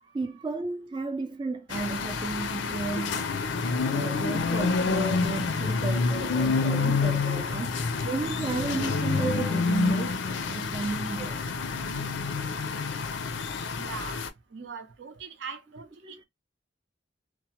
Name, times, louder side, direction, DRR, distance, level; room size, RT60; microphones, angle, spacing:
voice 1, 0.0-3.3 3.9-11.4 16.0-16.2, right 3 dB, 25° right, 0.3 m, -33 dB
sound 1, 1.7-14.3, left 4 dB, 80° left, 0.5 m, -28 dB
voice 2, 13.8-14.2 14.5-16.2, right 6 dB, 75° right, 0.6 m, -41 dB
2.9 x 2.1 x 2.8 m
head